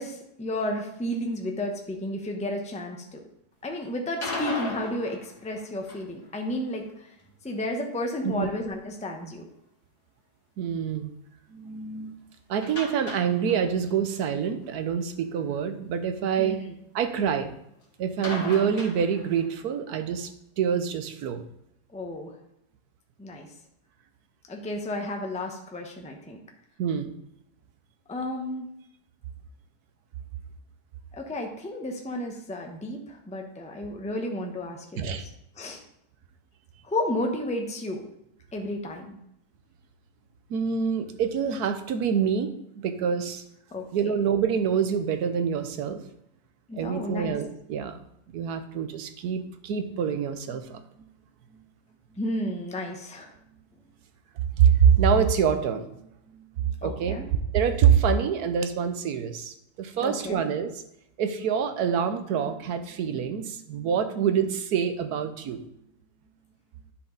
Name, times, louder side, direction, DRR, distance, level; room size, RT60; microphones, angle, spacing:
voice 1, 0.0-3.2 3.6-7.1 7.4-9.5 16.4-16.6 21.9-22.3 23.2-23.5 24.5-26.4 28.1-28.7 31.1-35.3 35.6-35.8 36.8-38.1 38.5-39.2 43.7-44.1 46.7-47.4 52.2-53.3 56.8-57.2 60.0-60.4, left 1 dB, 5° left, 2 dB, 0.7 m, -32 dB
sound 1, 4.1-6.2 12.6-13.9 14.2-14.3 14.6-14.7 18.2-19.6, left 2 dB, 45° left, 2.4 m, -36 dB
voice 2, 10.6-11.1 11.5-12.1 12.5-16.6 16.9-17.5 18.0-20.3 20.6-21.4 26.8-27.1 35.0-35.2 40.5-43.4 43.9-46.0 46.8-48.0 48.3-50.8 54.6-55.9 56.3-57.2 57.5-60.8 61.2-65.6, right 7 dB, 75° right, 8 dB, 1.3 m, -26 dB
10.5 x 5.0 x 3.8 m, 0.80 s
omnidirectional pair, 1.7 m